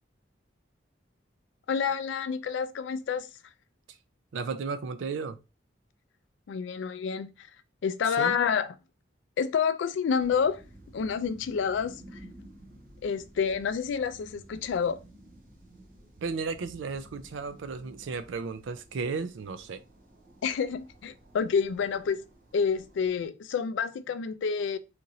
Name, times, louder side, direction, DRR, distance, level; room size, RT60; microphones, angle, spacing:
voice 1, 1.7-3.3 6.5-7.5 7.8-8.7 9.4-10.6 10.9-12.2 13.0-15.0 20.4-22.2 22.5-24.8, left 6 dB, 75° left, 0.3 m, -28 dB
voice 2, 4.3-5.4 8.2-8.4 16.2-19.8, right 4 dB, 80° right, 0.4 m, -34 dB
sound 1, 10.2-23.3, right 1 dB, 45° right, 0.7 m, -53 dB
3.0 x 2.5 x 2.6 m
head